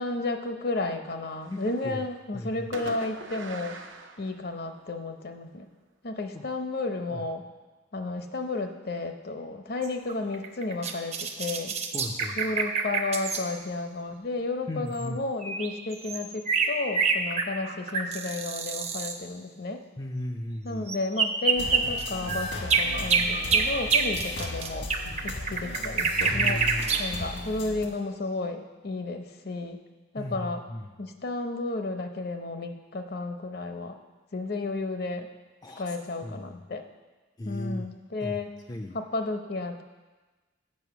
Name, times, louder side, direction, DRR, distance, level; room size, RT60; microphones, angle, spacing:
voice 1, 0.0-3.8 4.2-5.7 6.0-7.4 7.9-11.7 12.4-19.8 20.6-24.9 25.2-26.6 27.0-29.8 30.1-30.6 31.0-34.0 34.3-35.3 35.8-36.8 37.4-38.5 38.9-39.8, left 3 dB, 55° left, 6 dB, 0.7 m, -32 dB
Fireworks, 1.1-2.1 2.7-4.9, right 3 dB, 90° right, 0.8 m, -43 dB
voice 2, 1.5-2.1 2.3-2.7 6.3-6.5 7.1-7.2 11.9-12.4 14.7-15.2 20.0-20.9 26.3-26.9 30.2-30.9 35.6-36.0 36.2-36.6 37.4-37.9 38.2-38.4 38.7-39.0, left 1 dB, 20° left, 3 dB, 0.4 m, -36 dB
sound 1, 9.8-13.4 15.0-15.1 15.4-19.1 20.9-27.0, right 5 dB, 35° right, 0.6 m, -26 dB
sound 2, 21.6-27.9, left 2 dB, 75° left, 1.3 m, -37 dB
7.8 x 5.3 x 7.0 m, 1.2 s
head